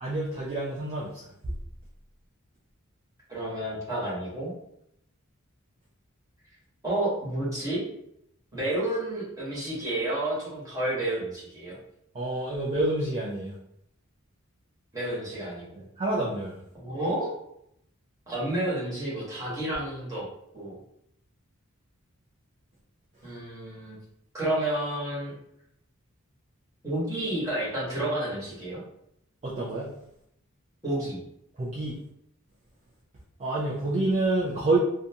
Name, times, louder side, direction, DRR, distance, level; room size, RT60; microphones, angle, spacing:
voice 1, 0.0-1.2 12.1-13.5 16.0-16.6 29.4-29.9 31.6-32.0 33.4-34.8, right 2 dB, 30° right, -5 dB, 0.4 m, -28 dB
voice 2, 3.3-4.5 6.8-7.8 8.5-11.8 14.9-15.6 16.7-17.3 18.3-20.2 20.5-20.7 23.2-24.0 24.3-25.3 26.8-28.8 30.8-31.2, right 1 dB, 15° right, -8 dB, 1.2 m, -30 dB
2.6 x 2.3 x 2.7 m, 0.76 s
head